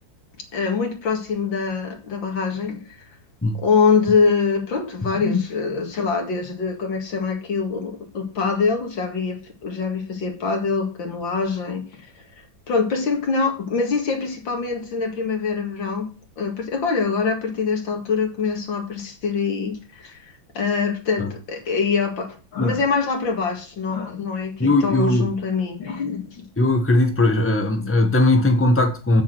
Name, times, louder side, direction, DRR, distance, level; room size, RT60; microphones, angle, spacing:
voice 1, 0.5-3.0 3.6-12.1 12.7-16.1 16.4-20.2 20.5-26.3, left 5 dB, 70° left, 2.7 m, -24 dB
voice 2, 24.6-25.3 26.6-29.2, left 2 dB, 10° left, 1.2 m, -19 dB
8.3 x 7.2 x 6.2 m
omnidirectional pair, 2.2 m